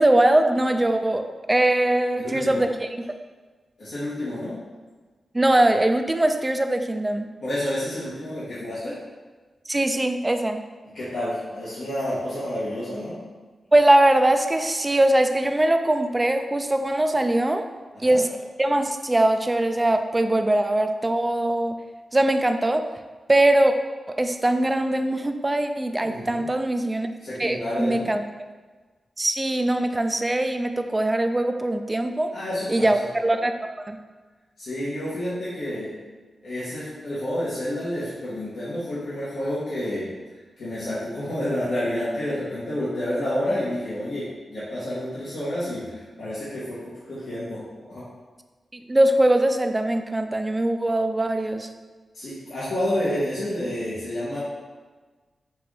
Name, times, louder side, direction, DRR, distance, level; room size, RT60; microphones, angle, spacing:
voice 1, 0.0-3.2 5.3-7.3 9.7-10.6 13.7-17.6 18.0-18.3 18.6-21.8 22.1-22.9 23.3-23.7 24.1-27.1 27.4-28.2 29.2-32.3 32.7-33.5 33.8-34.0 48.7-51.7, right 1 dB, 20° right, 7 dB, 0.3 m, -21 dB
voice 2, 2.2-2.6 3.8-4.5 7.4-8.9 10.9-13.2 18.0-18.2 26.0-26.4 27.2-28.1 32.3-33.0 34.6-35.9 36.4-40.1 40.6-46.8 47.1-47.6 47.9-48.0 52.1-54.4, left 1 dB, 85° left, -12 dB, 1.4 m, -29 dB
5.9 x 2.6 x 3.3 m, 1.3 s
cardioid pair, 80°, 0 cm